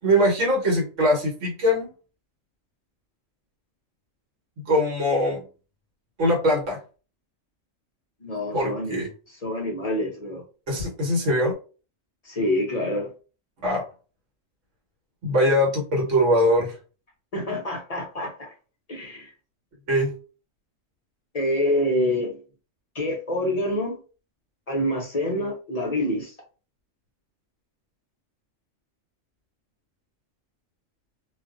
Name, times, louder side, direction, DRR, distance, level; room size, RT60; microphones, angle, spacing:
voice 1, 0.0-1.9 4.6-5.4 6.2-6.8 8.5-9.1 10.7-11.5 13.6-13.8 15.2-16.7 19.9-20.1, equal, 70° right, 0 dB, 1.3 m, -22 dB
voice 2, 8.2-10.4 12.2-13.1 17.3-18.5 18.9-19.3 21.3-22.4 22.9-24.0 24.7-26.4, left 1 dB, 55° left, 0 dB, 0.4 m, -27 dB
2.5 x 2.3 x 2.4 m, 0.36 s
omnidirectional pair, 1.3 m